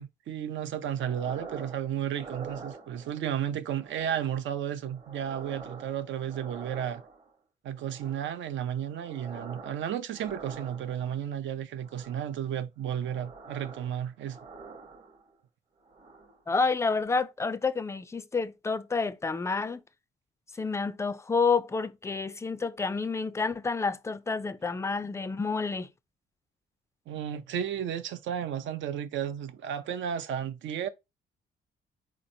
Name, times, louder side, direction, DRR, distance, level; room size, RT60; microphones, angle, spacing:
voice 1, 0.0-7.0 7.6-14.4 27.1-30.9, right 9 dB, 70° right, 0.6 m, -33 dB
sound 1, 1.0-1.8 2.1-3.3 3.8-4.5 4.8-7.3 7.8-8.5 8.8-9.8 10.1-11.2 11.8-12.4 12.9-15.4 15.8-16.4 16.8-17.0, right 4 dB, 30° right, 0.8 m, -46 dB
voice 2, 16.5-19.8 20.6-25.9, left 4 dB, 15° left, 0.3 m, -29 dB
4.3 x 2.9 x 2.7 m
cardioid pair, 90°, 20 cm